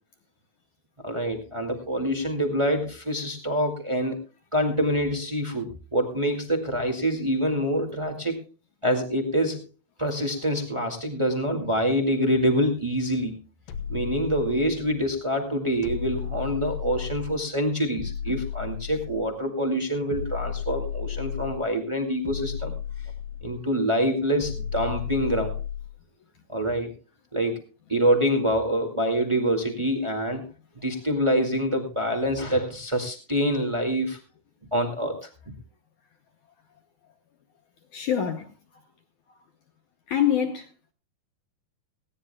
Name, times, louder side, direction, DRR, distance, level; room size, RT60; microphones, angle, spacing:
voice 1, 1.0-4.2 4.5-8.4 8.8-9.6 10.0-13.3 13.9-22.7 23.4-25.5 26.5-26.9 27.3-27.6 27.9-30.4 30.8-34.2 34.7-35.3, equal, 35° right, 0.4 m, -26 dB
sound 1, 13.7-15.0 15.8-17.5 18.0-19.4 20.1-21.7 22.3-23.7 24.4-26.0, left 8 dB, 85° left, 3.4 m, -34 dB
voice 2, 37.9-38.8 39.3-39.4 40.1-40.9, left 9 dB, 65° left, 2.0 m, -26 dB
19.5 x 16.5 x 2.3 m
omnidirectional pair, 4.7 m